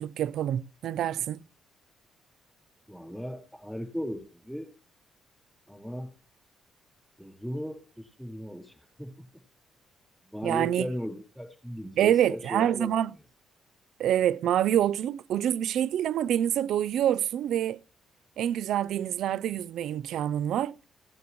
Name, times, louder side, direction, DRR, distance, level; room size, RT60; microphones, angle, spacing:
voice 1, 0.0-1.4 10.4-10.9 12.0-13.1 14.0-17.8 18.4-20.8, right 11 dB, 75° right, 0.4 m, -26 dB
voice 2, 2.9-4.7 5.7-6.1 7.2-9.2 10.2-12.9, equal, 5° left, 4.2 m, -37 dB
17.0 x 9.6 x 3.0 m
cardioid pair, 90°, 0 cm